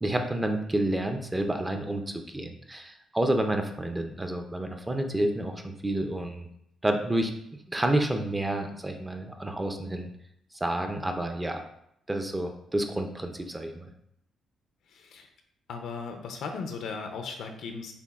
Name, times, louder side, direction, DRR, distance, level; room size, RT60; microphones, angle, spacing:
voice 1, 0.0-6.5 6.8-7.3 7.7-10.1 10.6-11.6 12.1-13.9, right 1 dB, 10° right, 5 dB, 0.4 m, -29 dB
voice 2, 14.9-15.3 15.7-17.9, left 5 dB, 75° left, 4 dB, 0.6 m, -37 dB
6.9 x 2.5 x 2.4 m, 0.74 s
cardioid pair, 135°, 0 cm